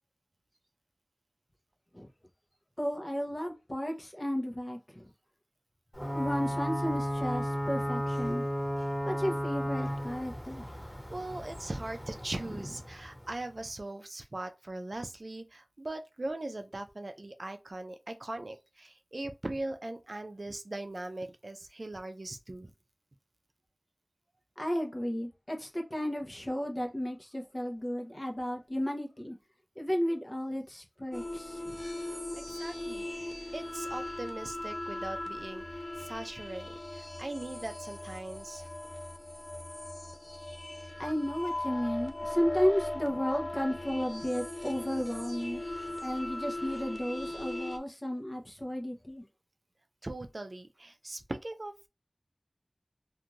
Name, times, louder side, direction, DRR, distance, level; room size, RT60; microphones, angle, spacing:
voice 1, 2.8-5.1 6.1-8.4 9.0-10.7 12.5-12.6 24.6-29.4 29.8-31.8 41.0-45.6 46.0-49.2, equal, 35° left, 0.8 m, -33 dB
Ocean / Boat Water vehicle / Alarm, 5.9-13.5, equal, 15° left, 1.5 m, -34 dB
voice 2, 11.1-22.7 32.5-35.6 36.0-38.7 50.0-51.7, right 2 dB, 65° right, 0.4 m, -40 dB
sound 1, 31.1-47.8, left 1 dB, 50° left, 0.5 m, -39 dB
2.6 x 2.4 x 3.1 m
wide cardioid pair, 45°, 0 cm